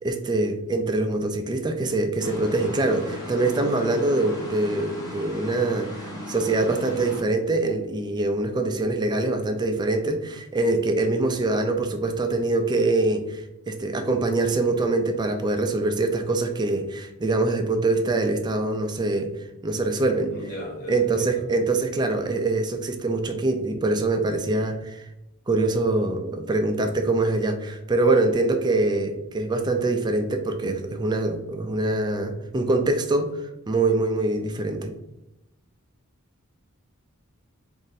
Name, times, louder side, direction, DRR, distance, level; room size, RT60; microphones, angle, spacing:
voice 1, 0.0-19.3 19.6-20.3 20.9-25.0 25.5-33.4 33.7-34.9, right 2 dB, 20° right, 6 dB, 0.3 m, -24 dB
sound 1, 2.2-7.2, equal, 15° left, 0.9 m, -36 dB
voice 2, 20.3-21.4 29.0-29.1, equal, 45° left, -2 dB, 1.0 m, -37 dB
3.1 x 2.6 x 4.0 m, 0.91 s
head